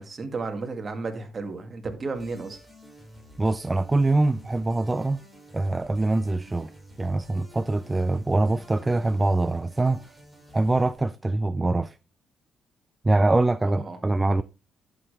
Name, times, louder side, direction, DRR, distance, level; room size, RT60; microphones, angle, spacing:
voice 1, 0.0-2.6 13.6-14.0, right 3 dB, 35° right, 2.1 m, -33 dB
sound 1, 2.1-11.0, equal, ahead, 4.9 m, -50 dB
voice 2, 3.4-5.2 5.5-6.7 7.0-10.2 10.5-12.0 13.0-14.4, right 2 dB, 20° right, 0.4 m, -24 dB
11.0 x 7.2 x 3.3 m
cardioid pair, 90°, 0 cm